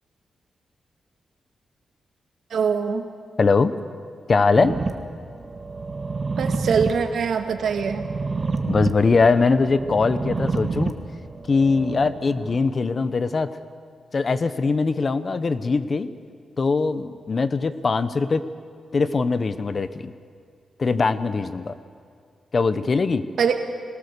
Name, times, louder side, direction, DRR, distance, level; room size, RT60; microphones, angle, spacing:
voice 1, 2.5-3.1 6.4-8.0 23.4-23.5, right 6 dB, 75° right, 6 dB, 1.6 m, -23 dB
voice 2, 3.4-3.7 4.3-4.8 8.7-10.9 11.5-13.5 14.1-16.1 16.6-18.4 18.9-20.1 20.8-21.7 22.5-23.2, left 4 dB, 45° left, 13 dB, 0.9 m, -21 dB
sound 1, 4.6-12.5, right 4 dB, 40° right, 1.6 m, -29 dB
21.5 x 19.0 x 6.7 m, 2.2 s
cardioid pair, 95°, 0 cm